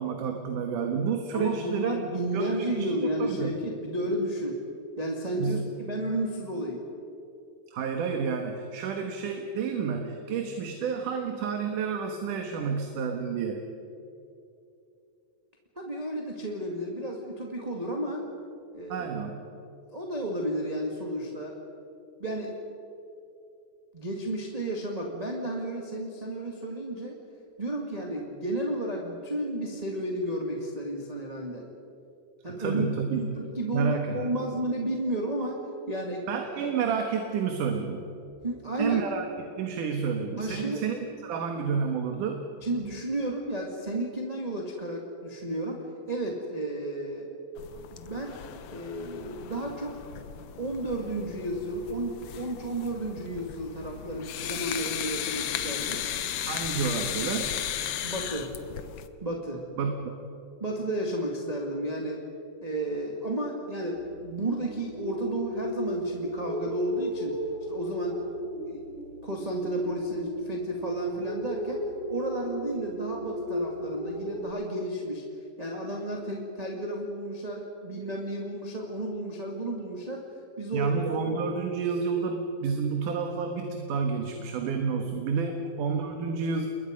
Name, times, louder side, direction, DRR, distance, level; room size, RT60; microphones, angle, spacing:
voice 1, 0.0-2.0 2.3-3.6 5.4-5.6 7.7-13.6 18.9-19.5 32.5-33.2 33.7-34.3 36.3-38.0 38.8-41.0 41.2-42.4 56.4-57.5 59.8-60.2 80.7-86.7, right 6 dB, 80° right, 4 dB, 2.9 m, -30 dB
voice 2, 1.3-4.6 5.0-6.8 15.8-18.3 18.7-19.1 19.9-21.6 22.2-22.6 23.9-27.2 27.6-31.7 32.4-35.6 35.9-36.3 38.4-39.1 40.4-40.8 42.6-47.3 47.9-48.4 48.7-49.9 50.6-56.0 58.0-58.5 59.2-59.6 60.6-62.2 62.6-67.4 67.7-68.2 68.7-68.8 69.2-75.2 75.6-80.3 80.6-81.2 85.4-85.5, right 1 dB, 15° right, -1 dB, 1.7 m, -32 dB
sound 1, 47.6-59.1, left 10 dB, 65° left, 1.7 m, -35 dB
sound 2, 63.9-74.5, equal, 40° right, 7.9 m, -36 dB
29.0 x 21.5 x 5.3 m, 2.7 s
omnidirectional pair, 3.7 m